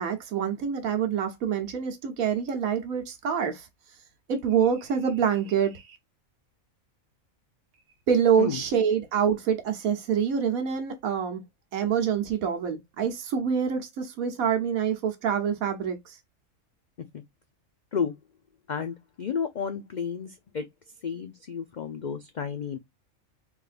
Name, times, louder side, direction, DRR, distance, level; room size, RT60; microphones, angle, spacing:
voice 1, 0.0-3.7 4.3-6.0 8.1-11.4 11.7-16.1, right 7 dB, 85° right, 1.4 m, -26 dB
voice 2, 18.7-20.7 21.0-22.8, left 6 dB, 85° left, 0.4 m, -32 dB
3.6 x 3.3 x 2.4 m
omnidirectional pair, 1.4 m